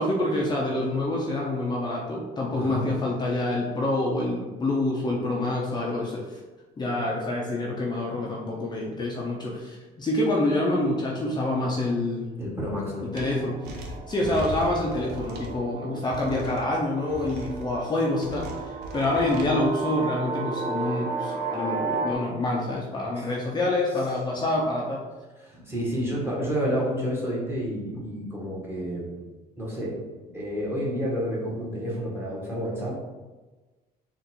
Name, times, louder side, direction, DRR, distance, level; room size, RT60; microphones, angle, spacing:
voice 1, 0.0-6.4 6.8-12.3 13.1-25.0, left 2 dB, 25° left, -3 dB, 0.6 m, -27 dB
voice 2, 2.5-2.9 12.4-13.1 23.2-23.3 25.4-29.1 29.6-30.0 30.3-33.1, equal, 15° right, -5 dB, 1.4 m, -30 dB
sound 1, 13.1-22.1, right 4 dB, 50° right, 0.5 m, -34 dB
sound 2, 13.1-13.2 13.6-15.5 16.1-16.6 17.1-17.7 18.2-19.5, equal, 80° right, 0.8 m, -38 dB
4.0 x 2.5 x 4.4 m, 1.2 s
cardioid pair, 110°, 17 cm